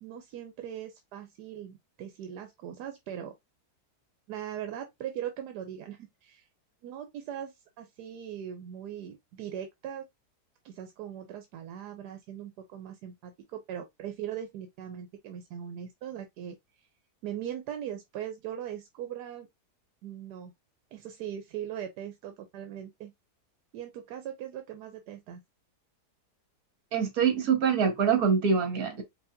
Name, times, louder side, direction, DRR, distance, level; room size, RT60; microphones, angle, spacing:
voice 1, 0.0-3.3 4.3-6.5 6.8-10.0 10.6-16.6 17.2-19.5 20.0-20.5 20.9-23.1 23.7-25.4, right 10 dB, 85° right, 1.2 m, -40 dB
voice 2, 26.9-29.0, right 6 dB, 65° right, 1.5 m, -25 dB
4.9 x 2.7 x 2.5 m
omnidirectional pair, 1.7 m